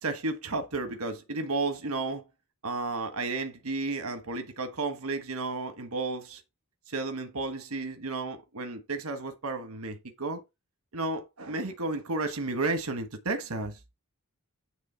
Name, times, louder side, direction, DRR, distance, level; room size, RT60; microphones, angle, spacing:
voice 1, 0.0-2.2 2.6-6.4 6.9-10.4 10.9-13.8, right 3 dB, 80° right, 1.4 m, -32 dB
9.6 x 3.6 x 5.7 m
head